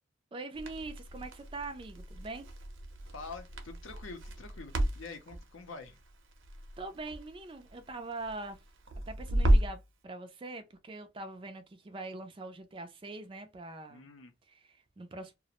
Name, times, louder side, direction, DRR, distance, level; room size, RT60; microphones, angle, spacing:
voice 1, 0.3-2.5 6.8-8.6 9.1-14.1 14.5-15.3, right 2 dB, 25° right, 0.3 m, -43 dB
Crackle, 0.5-9.9, right 1 dB, 65° right, 0.6 m, -33 dB
voice 2, 3.0-6.0 13.9-14.3, left 4 dB, 70° left, 0.5 m, -46 dB
2.4 x 2.0 x 2.8 m
head